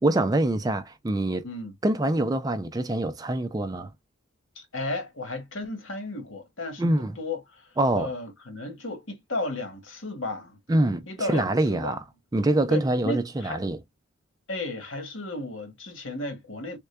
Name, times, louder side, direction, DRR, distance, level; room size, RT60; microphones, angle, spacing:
voice 1, 0.0-1.5 1.8-3.9 6.8-7.2 7.8-8.1 10.7-12.0 12.3-13.8, right 1 dB, 20° right, 0.3 m, -25 dB
voice 2, 1.4-1.7 4.5-10.6 11.1-12.0 12.7-13.6 14.5-16.8, left 2 dB, 75° left, 1.5 m, -34 dB
3.6 x 2.2 x 3.3 m
head